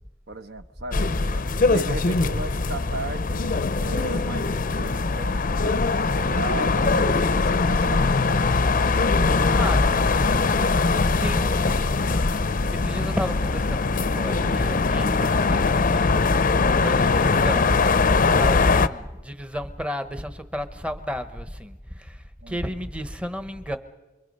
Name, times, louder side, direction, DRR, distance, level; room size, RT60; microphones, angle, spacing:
voice 1, 0.3-3.4 3.8-8.9 22.4-22.8, right 3 dB, 60° right, 8 dB, 1.0 m, -36 dB
sound 1, 0.9-18.9, left 3 dB, 45° left, 0.6 m, -21 dB
voice 2, 9.5-10.5 11.2-12.3 12.7-16.2 16.7-17.8 18.2-23.8, equal, 5° right, 9 dB, 0.9 m, -33 dB
28.5 x 22.5 x 5.4 m, 1.1 s
head